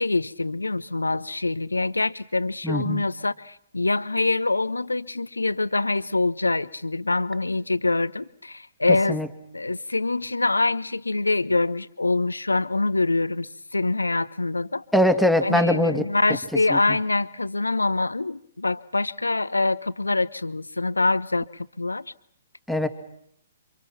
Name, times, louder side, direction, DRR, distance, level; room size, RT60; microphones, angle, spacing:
voice 1, 0.0-9.2 9.5-14.8 15.4-22.1, left 3 dB, 75° left, 1.1 m, -25 dB
voice 2, 2.6-3.0 9.1-9.3 14.9-16.0 16.7-16.8 22.7-22.9, left 1 dB, ahead, 2.5 m, -21 dB
29.5 x 26.5 x 5.9 m
figure-of-eight pair, 125°, 0 cm